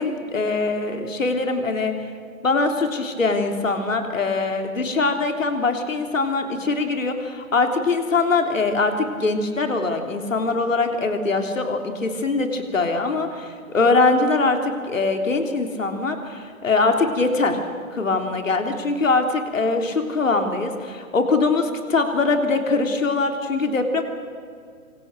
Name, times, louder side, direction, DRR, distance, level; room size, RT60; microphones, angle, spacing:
voice 1, 0.0-1.9 2.4-17.6 17.9-24.0, left 3 dB, 65° left, 5 dB, 3.5 m, -22 dB
26.0 x 25.5 x 6.7 m, 2.2 s
figure-of-eight pair, 125°, 41 cm